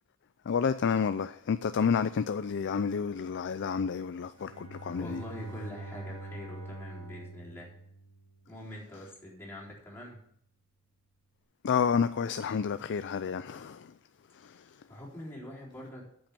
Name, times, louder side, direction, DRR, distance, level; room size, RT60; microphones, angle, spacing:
voice 1, 0.5-5.2 11.6-13.8, left 6 dB, 55° left, 0.4 m, -29 dB
Bowed string instrument, 4.3-8.6, right 2 dB, 30° right, 4.8 m, -45 dB
voice 2, 4.9-7.7 8.5-10.2 14.9-16.0, equal, 10° left, 3.9 m, -44 dB
8.8 x 7.8 x 7.4 m
head